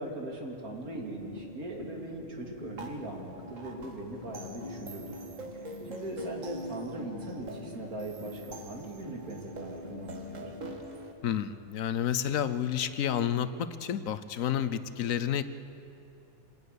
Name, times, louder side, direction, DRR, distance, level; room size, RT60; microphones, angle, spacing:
voice 1, 0.0-5.2 5.5-10.5, right 1 dB, 85° right, 1 dB, 3.0 m, -40 dB
sound 1, 0.7-10.8, left 2 dB, 35° left, 2.2 m, -45 dB
sound 2, 2.8-11.1, right 2 dB, 65° right, 1.9 m, -46 dB
voice 2, 11.2-15.4, left 9 dB, 70° left, 13 dB, 1.1 m, -30 dB
25.5 x 18.5 x 6.6 m, 2.7 s
omnidirectional pair, 1.5 m